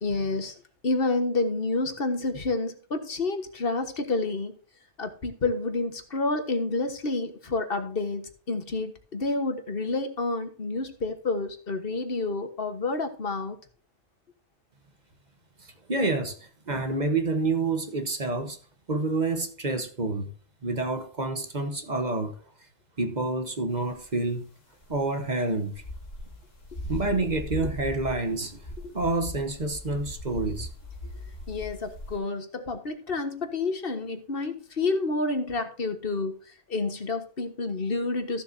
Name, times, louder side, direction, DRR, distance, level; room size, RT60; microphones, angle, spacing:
voice 1, 0.0-0.5 0.8-4.6 5.0-13.6 27.1-27.2 31.5-36.4 36.7-38.4, left 3 dB, 50° left, 1.6 m, -29 dB
voice 2, 15.6-18.6 18.9-20.3 20.6-22.4 23.0-24.5 24.9-25.8 26.9-30.7, right 3 dB, 35° right, 1.2 m, -28 dB
sound 1, 23.9-24.2 24.8-32.2, left 1 dB, 75° left, 2.7 m, -39 dB
15.0 x 7.2 x 2.7 m
omnidirectional pair, 1.3 m